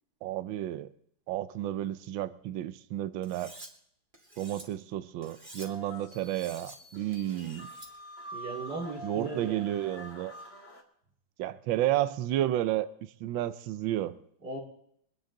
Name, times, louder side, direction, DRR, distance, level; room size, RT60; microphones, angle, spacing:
voice 1, 0.2-0.9 1.3-3.5 4.4-7.7 9.0-10.3 11.4-12.9 13.2-14.2, right 13 dB, 75° right, 13 dB, 1.4 m, -31 dB
Cutlery silverware, 3.2-3.7 4.1-4.6 5.2-5.7 6.2-6.8 7.1-7.9, right 1 dB, 25° right, 2.4 m, -49 dB
sound 1, 5.6-10.8, equal, 55° left, 3.0 m, -46 dB
voice 2, 8.3-9.6 14.4-14.6, right 3 dB, 55° right, -5 dB, 3.1 m, -37 dB
24.0 x 10.5 x 3.9 m, 0.69 s
omnidirectional pair, 2.2 m